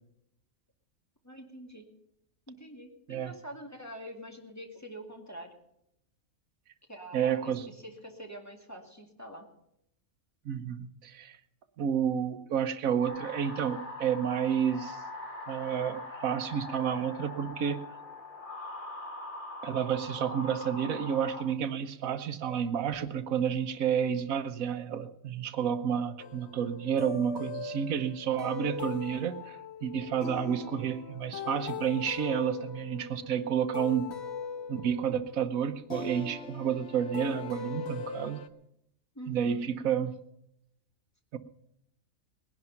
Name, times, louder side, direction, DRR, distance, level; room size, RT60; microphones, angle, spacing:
voice 1, 1.2-1.9 2.5-5.5 6.9-9.5 39.1-39.7, right 1 dB, 10° left, 2 dB, 2.0 m, -45 dB
voice 2, 7.1-7.6 10.4-11.4 11.8-15.0 15.5-17.8 19.6-34.1 34.7-38.4 39.3-40.1 41.3-41.4, right 8 dB, 85° right, 10 dB, 1.3 m, -30 dB
sound 1, 13.0-21.4, left 2 dB, 80° left, 3.4 m, -42 dB
sound 2, 26.2-38.5, left 5 dB, 55° left, 1.1 m, -40 dB
19.5 x 10.5 x 5.7 m, 0.77 s
omnidirectional pair, 1.4 m